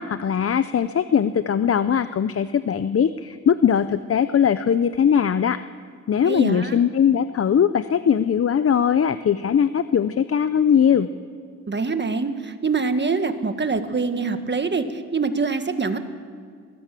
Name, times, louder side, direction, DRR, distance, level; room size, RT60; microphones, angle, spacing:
voice 1, 0.0-5.6 6.1-11.1, left 8 dB, 45° left, 13 dB, 0.6 m, -20 dB
voice 2, 6.3-6.8 11.7-16.0, right 4 dB, 35° right, 8 dB, 1.6 m, -24 dB
22.5 x 17.0 x 7.5 m, 2.1 s
cardioid pair, 90°, 32 cm